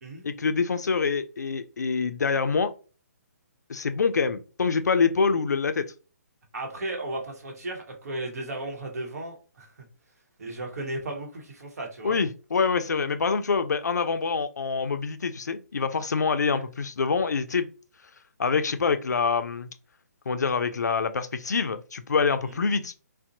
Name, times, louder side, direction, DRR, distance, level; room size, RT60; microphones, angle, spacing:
voice 1, 0.2-2.7 3.7-5.9 12.0-17.7 18.4-19.7 20.3-23.0, left 5 dB, 80° left, 0.4 m, -25 dB
voice 2, 6.5-9.7 10.4-12.2 16.5-16.6 22.4-22.6, right 2 dB, 60° right, 1.0 m, -35 dB
2.5 x 2.1 x 2.6 m
figure-of-eight pair, 135°, 9 cm